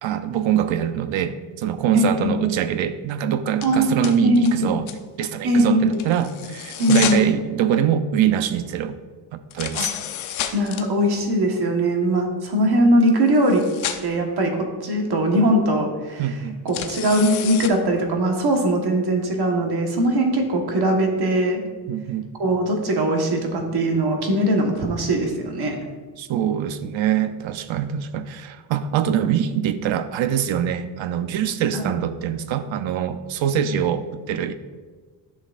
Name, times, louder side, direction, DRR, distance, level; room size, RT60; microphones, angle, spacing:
voice 1, 0.0-4.9 5.2-9.0 9.3-9.9 16.2-16.6 21.9-22.3 26.2-34.5, right 9 dB, 75° right, 11 dB, 0.7 m, -23 dB
voice 2, 1.9-2.4 3.6-4.8 5.4-6.0 6.8-7.3 9.7-9.8 10.5-13.6 14.0-16.4 16.6-21.6 22.4-25.8 31.7-31.8, right 1 dB, 55° right, 2 dB, 1.4 m, -20 dB
sound 1, 3.6-3.7 4.0-4.5 4.9-5.0 5.9-7.3 9.5-10.8 13.0-13.1 13.3-14.0 16.7-17.7, left 10 dB, 80° left, 0.8 m, -30 dB
11.0 x 6.3 x 2.5 m, 1.4 s
cardioid pair, 115°, 47 cm